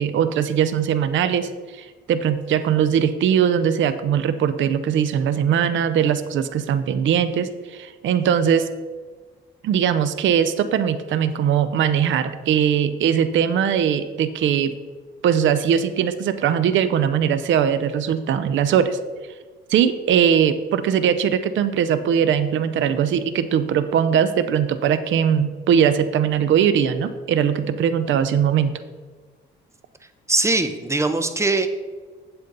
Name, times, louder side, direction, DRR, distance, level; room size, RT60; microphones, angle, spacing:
voice 1, 0.0-8.7 9.6-14.7 15.2-19.0 19.7-28.8, right 8 dB, 70° right, 11 dB, 0.6 m, -20 dB
voice 2, 30.3-31.7, right 2 dB, 15° right, 9 dB, 0.8 m, -21 dB
8.3 x 7.8 x 3.9 m, 1.5 s
cardioid pair, 90°, 20 cm